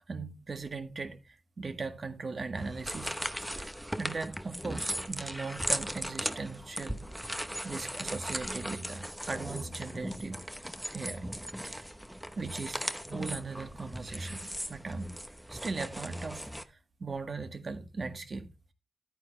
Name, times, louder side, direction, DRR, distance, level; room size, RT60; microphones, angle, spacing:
voice 1, 0.1-3.1 3.5-3.7 4.0-7.0 7.6-10.4 10.9-11.3 11.6-11.9 12.4-15.1 15.5-18.5, right 4 dB, 50° right, 1.7 m, -39 dB
sound 1, 2.6-16.6, equal, 5° right, 0.9 m, -38 dB
11.5 x 9.2 x 3.3 m
wide cardioid pair, 100°, 0 cm